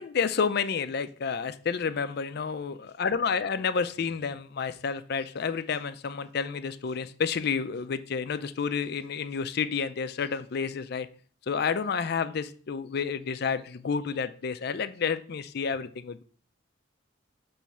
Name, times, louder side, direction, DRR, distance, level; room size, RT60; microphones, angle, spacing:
voice 1, 0.0-11.1 11.5-16.2, left 6 dB, 55° left, 12 dB, 0.4 m, -30 dB
6.0 x 3.1 x 5.5 m, 0.43 s
head